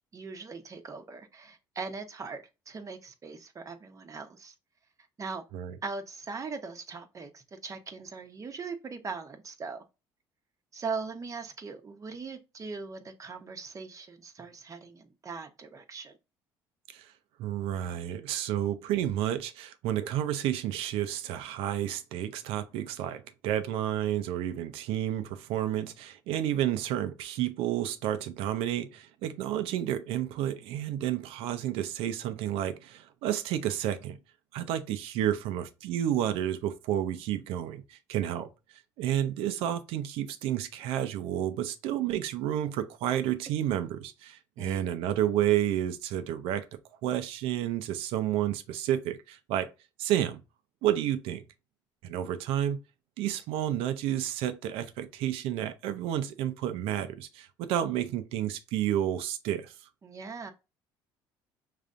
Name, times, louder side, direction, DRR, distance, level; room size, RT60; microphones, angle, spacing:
voice 1, 0.1-4.5 5.2-5.4 5.8-9.8 10.7-16.1 44.6-45.0 60.0-60.5, right 4 dB, 35° right, 0.9 m, -40 dB
voice 2, 17.4-34.2 34.5-38.5 39.0-46.6 47.0-49.7 50.0-50.4 50.8-51.4 52.0-52.8 53.2-59.7, right 11 dB, 75° right, 0.6 m, -30 dB
5.2 x 3.2 x 2.5 m
supercardioid pair, 80°, 10 cm